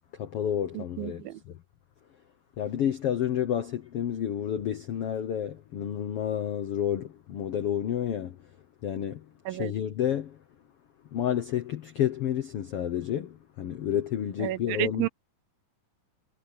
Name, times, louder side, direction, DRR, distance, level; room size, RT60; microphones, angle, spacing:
voice 1, 0.2-1.5 2.6-8.4 8.8-10.4 11.1-15.1, left 10 dB, 80° left, 1.3 m, -30 dB
voice 2, 0.7-1.4 9.5-9.7 14.4-15.1, right 17 dB, 80° right, 2.4 m, -31 dB
omnidirectional pair, 4.2 m